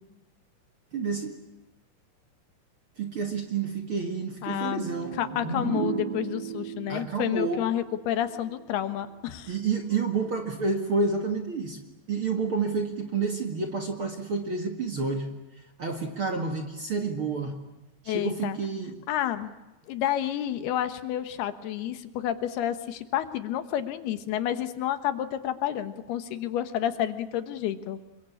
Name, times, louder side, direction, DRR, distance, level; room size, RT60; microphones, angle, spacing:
voice 1, 0.9-1.4 3.0-5.2 6.9-7.6 9.5-11.8 12.1-15.3 15.8-17.6 18.0-19.0, right 4 dB, 45° right, 4 dB, 2.0 m, -29 dB
voice 2, 4.4-4.9 5.2-9.5 18.1-18.6 19.1-19.5 19.9-28.0, left 11 dB, 80° left, 10 dB, 3.3 m, -30 dB
sound 1, 4.8-8.5, right 6 dB, 75° right, 5.1 m, -34 dB
28.0 x 23.0 x 8.6 m, 1.0 s
omnidirectional pair, 4.6 m